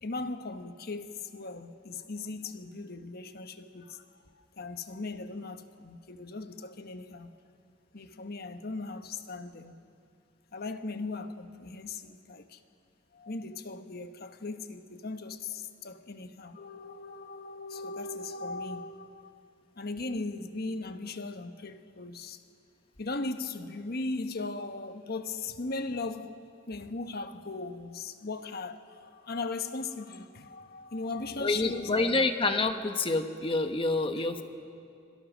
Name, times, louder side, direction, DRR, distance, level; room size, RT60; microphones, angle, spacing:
voice 1, 0.0-4.2 4.6-7.3 7.9-9.7 10.5-12.6 13.1-19.3 19.8-22.4 23.0-26.4 26.7-32.3, left 3 dB, 55° left, 1.1 m, -38 dB
voice 2, 31.4-34.4, left 3 dB, 30° left, 1.1 m, -27 dB
25.5 x 23.0 x 6.2 m
head